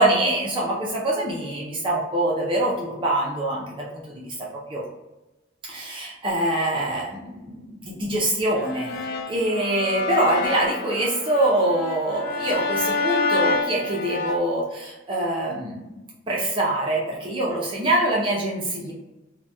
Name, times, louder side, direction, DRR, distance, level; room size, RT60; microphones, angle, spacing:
voice 1, 0.0-4.3 4.7-4.8 5.7-16.0 16.3-18.9, right 1 dB, 25° right, -3 dB, 0.4 m, -24 dB
sound 1, 8.6-14.4, left 3 dB, 50° left, 0.3 m, -27 dB
2.8 x 2.1 x 3.3 m, 1.0 s
head